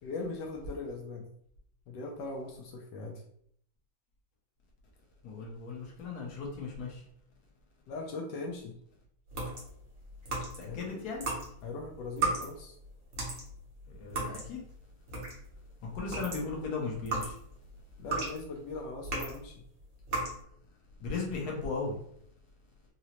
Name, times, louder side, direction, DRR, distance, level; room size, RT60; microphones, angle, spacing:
voice 1, 0.0-1.3 1.9-3.2 7.9-8.8 10.7-11.0 11.6-12.8 18.0-19.6, left 3 dB, 85° left, 1 dB, 0.9 m, -40 dB
voice 2, 5.2-7.0 10.6-11.3 13.9-14.6 15.8-17.3 21.0-22.0, left 4 dB, 60° left, -1 dB, 1.1 m, -36 dB
sound 1, 9.3-10.8 11.1-15.6 15.9-19.5 20.0-20.4, right 3 dB, 50° right, 1.0 m, -35 dB
3.8 x 2.1 x 2.9 m, 0.66 s
omnidirectional pair, 2.4 m